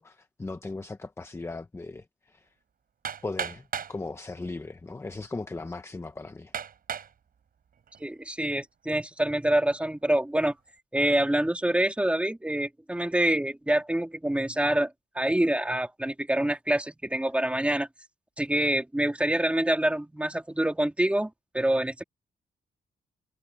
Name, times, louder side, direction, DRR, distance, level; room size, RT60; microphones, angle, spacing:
voice 1, 0.0-2.5 3.2-6.5, left 3 dB, 15° left, 0.8 m, -38 dB
Hammer, 3.0-4.0 4.9-5.0 5.6-5.7 6.5-7.1 7.7-8.2, right 7 dB, 55° right, 5.4 m, -35 dB
voice 2, 8.0-10.5 10.9-14.9 15.1-17.9 18.4-22.0, right 1 dB, 5° right, 2.5 m, -26 dB
wide cardioid pair, 155°, 18 cm